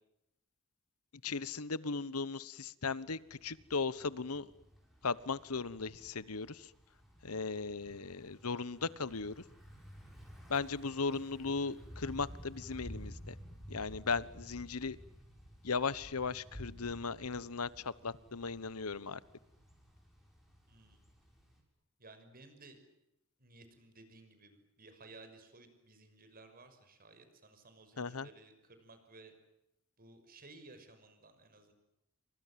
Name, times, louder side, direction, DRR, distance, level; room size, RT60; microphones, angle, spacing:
voice 1, 1.2-4.5 5.0-6.7 7.2-9.4 10.5-13.3 13.7-15.0 15.6-19.2 28.0-28.3, left 4 dB, 90° left, 18 dB, 1.2 m, -37 dB
Thunder / Bicycle, 3.2-21.6, equal, ahead, 7.4 m, -53 dB
voice 2, 20.7-21.0 22.0-22.8 23.4-29.3 30.0-31.7, right 3 dB, 45° right, 9 dB, 6.0 m, -57 dB
29.5 x 25.5 x 7.7 m, 0.87 s
head